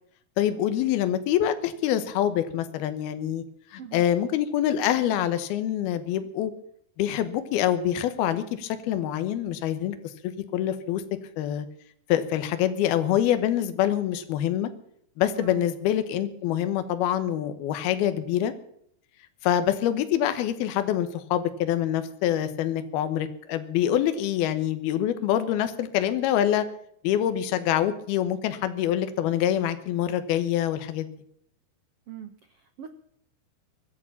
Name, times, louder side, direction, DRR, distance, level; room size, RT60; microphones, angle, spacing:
voice 1, 0.4-3.4 3.7-6.5 7.0-11.0 11.4-11.7 12.1-14.7 15.2-18.5 19.4-26.7 27.0-31.1, left 11 dB, 80° left, 10 dB, 3.0 m, -25 dB
voice 2, 32.1-32.9, right 9 dB, 80° right, 8 dB, 1.3 m, -42 dB
23.0 x 8.9 x 7.0 m, 0.68 s
omnidirectional pair, 4.5 m